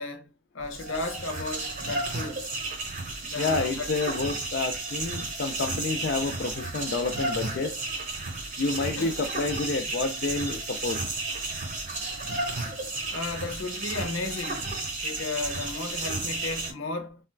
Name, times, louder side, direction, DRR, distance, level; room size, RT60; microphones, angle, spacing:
voice 1, 0.0-2.5 3.2-3.9 9.0-9.1 13.1-17.2, left 3 dB, 90° left, 0.7 m, -34 dB
sound 1, 0.6-16.7, right 2 dB, 40° right, 0.7 m, -33 dB
voice 2, 3.4-7.8 8.6-11.0, left 3 dB, 55° left, 0.3 m, -29 dB
4.1 x 2.2 x 2.2 m
head